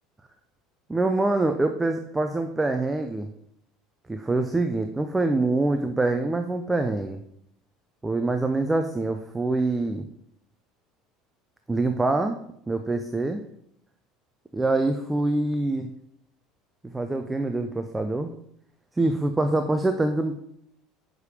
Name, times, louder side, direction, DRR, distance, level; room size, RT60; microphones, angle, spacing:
voice 1, 0.9-3.3 4.1-7.2 8.0-10.1 11.7-12.4 12.7-13.4 14.5-15.9 16.9-18.3 19.0-20.3, right 2 dB, 15° right, 6 dB, 0.7 m, -25 dB
6.4 x 5.2 x 5.0 m, 0.72 s
hypercardioid pair, 80°, 0 cm